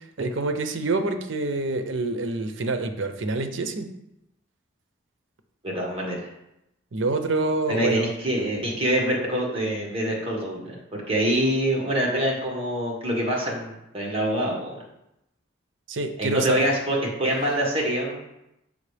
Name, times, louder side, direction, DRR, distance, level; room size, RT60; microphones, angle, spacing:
voice 1, 0.2-3.9 6.9-8.1 15.9-16.6, right 3 dB, 75° right, 8 dB, 0.6 m, -26 dB
voice 2, 5.6-6.3 7.7-14.8 16.2-18.2, right 1 dB, 30° right, -2 dB, 1.6 m, -25 dB
6.4 x 5.3 x 3.3 m, 0.86 s
head